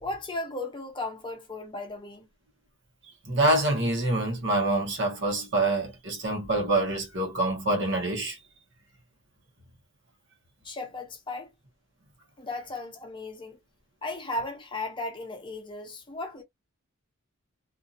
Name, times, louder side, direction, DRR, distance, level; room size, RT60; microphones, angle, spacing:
voice 1, 0.0-2.3 10.6-11.5 12.4-13.6 14.0-16.4, left 2 dB, 25° left, 0.6 m, -36 dB
voice 2, 3.2-8.4, right 2 dB, 55° right, 1.2 m, -26 dB
2.7 x 2.5 x 2.5 m
head